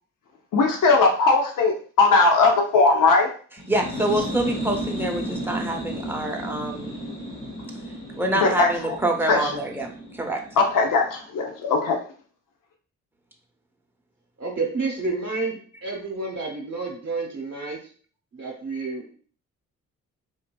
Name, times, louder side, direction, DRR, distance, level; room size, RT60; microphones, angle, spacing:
voice 1, 0.5-3.3 8.3-9.0 9.3-9.6 10.6-12.0, left 3 dB, 70° left, 2 dB, 0.8 m, -19 dB
voice 2, 3.5-7.1 8.2-10.5, right 1 dB, 5° right, 1 dB, 0.8 m, -26 dB
sound 1, 3.6-11.1, equal, 30° left, 1.5 m, -33 dB
voice 3, 14.4-17.8 18.3-19.2, right 3 dB, 45° right, -1 dB, 1.0 m, -30 dB
4.8 x 2.7 x 2.2 m, 0.43 s
cardioid pair, 70°, 33 cm